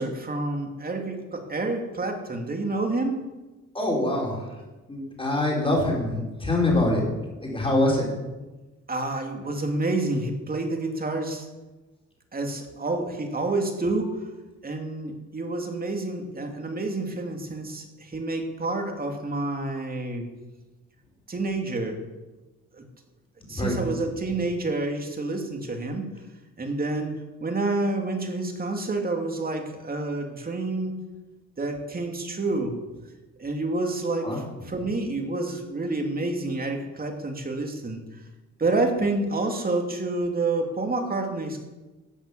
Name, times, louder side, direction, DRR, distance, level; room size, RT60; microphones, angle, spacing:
voice 1, 0.0-3.2 8.9-11.5 12.3-14.2 14.6-20.3 21.3-22.0 22.7-22.8 23.5-26.1 26.6-31.0 31.6-32.7 33.4-38.0 38.6-41.6, right 2 dB, 30° right, 3 dB, 2.7 m, -28 dB
voice 2, 3.7-4.4 4.9-7.0 7.4-8.1 23.6-23.7 34.2-34.4, left 1 dB, 20° left, -2 dB, 5.8 m, -24 dB
14.0 x 8.2 x 7.3 m, 1.1 s
cardioid pair, 90°, 30 cm